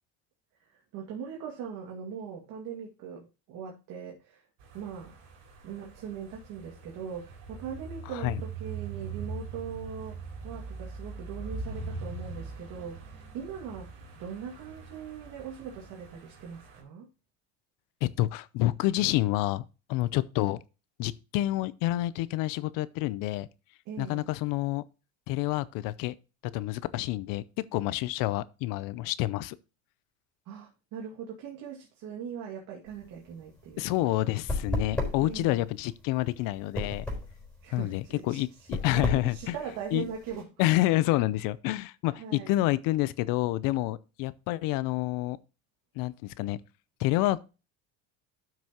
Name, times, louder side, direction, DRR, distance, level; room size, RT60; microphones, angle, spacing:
voice 1, 0.7-4.4 4.7-5.1 5.6-17.1 23.9-24.3 30.5-33.9 35.2-35.6 37.6-40.5 42.2-42.5, right 7 dB, 65° right, 2.2 m, -41 dB
sound 1, 4.6-16.8, right 4 dB, 80° right, 3.7 m, -42 dB
voice 2, 18.0-20.6 21.0-23.5 24.0-24.8 25.3-26.1 26.5-29.6 33.8-37.1 37.7-39.5 39.9-40.1 40.6-45.4 46.0-46.6 47.0-47.4, left 16 dB, 70° left, 0.6 m, -28 dB
sound 2, 32.9-40.4, left 2 dB, 5° left, 3.9 m, -35 dB
12.5 x 6.1 x 2.9 m
supercardioid pair, 100°, 34 cm